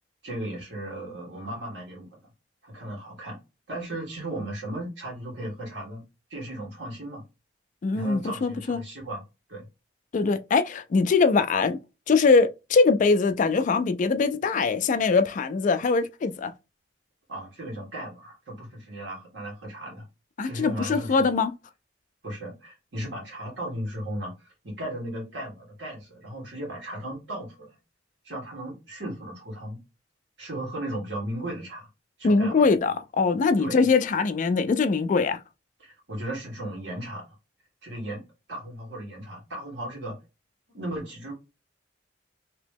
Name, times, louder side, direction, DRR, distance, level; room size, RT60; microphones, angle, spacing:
voice 1, 0.2-2.1 2.6-3.4 3.7-6.0 6.3-7.2 7.9-9.2 9.5-9.6 17.3-20.1 20.4-21.3 22.2-27.8 28.2-29.8 30.4-31.9 32.2-32.7 33.6-33.8 35.8-37.2 37.8-38.2 38.5-40.2 40.7-41.3, right 1 dB, 80° right, 1.7 m, -36 dB
voice 2, 7.8-8.8 10.1-11.8 12.1-16.5 20.4-21.5 32.2-35.4, left 4 dB, 45° left, 0.3 m, -22 dB
3.0 x 2.9 x 3.4 m
head